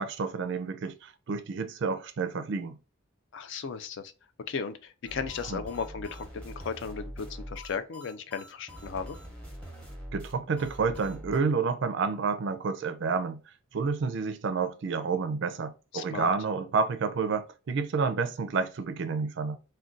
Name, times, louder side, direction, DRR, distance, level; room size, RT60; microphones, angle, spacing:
voice 1, 0.0-2.8 5.5-5.6 10.1-13.4 13.7-19.6, right 5 dB, 55° right, 0.4 m, -29 dB
voice 2, 3.3-4.1 4.5-9.2 15.9-16.3, left 5 dB, 55° left, 0.4 m, -36 dB
sound 1, 5.1-11.4, equal, 5° left, 0.7 m, -43 dB
2.4 x 2.2 x 3.7 m
head